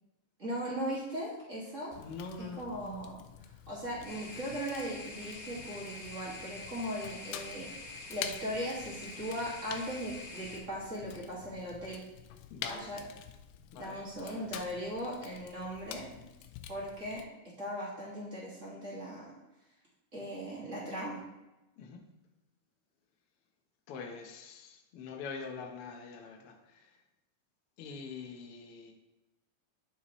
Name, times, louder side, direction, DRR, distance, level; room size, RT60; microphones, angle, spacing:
voice 1, 0.4-1.9 2.4-3.2 3.7-12.0 12.7-13.0 13.8-16.1 16.7-17.2 17.6-19.3 20.1-21.2, equal, 25° right, -6 dB, 2.0 m, -38 dB
Fire, 1.9-17.2, left 9 dB, 85° left, 2.3 m, -48 dB
voice 2, 2.0-2.6 12.5-13.0 13.7-14.0 21.8-22.0 23.9-26.8 27.8-28.9, left 4 dB, 70° left, 2 dB, 1.3 m, -44 dB
sound 1, 4.0-10.6, left 2 dB, 50° left, 1.7 m, -46 dB
9.3 x 7.0 x 3.1 m, 0.99 s
omnidirectional pair, 4.0 m